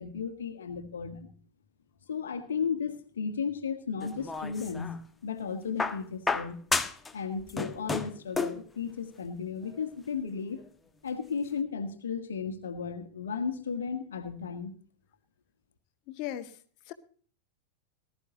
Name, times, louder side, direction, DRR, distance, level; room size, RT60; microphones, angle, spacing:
voice 1, 0.0-1.3 2.1-6.6 7.1-10.6 11.0-14.7, left 6 dB, 65° left, 8 dB, 1.6 m, -34 dB
sound 1, 4.0-5.0 5.8-7.1 7.4-8.7 9.7-9.8, left 3 dB, 10° left, 1.2 m, -32 dB
voice 2, 16.1-16.6 16.9-17.0, left 12 dB, 45° left, 8 dB, 1.7 m, -37 dB
20.0 x 13.0 x 2.9 m, 0.43 s
figure-of-eight pair, 90°, 0 cm